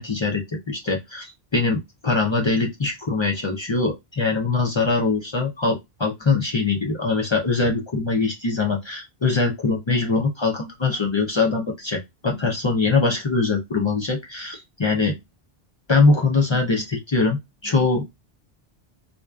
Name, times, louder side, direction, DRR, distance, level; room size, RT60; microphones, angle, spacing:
voice 1, 0.0-15.2 15.9-18.1, left 3 dB, 45° left, -1 dB, 0.4 m, -22 dB
2.5 x 2.2 x 2.2 m, 0.19 s
omnidirectional pair, 1.1 m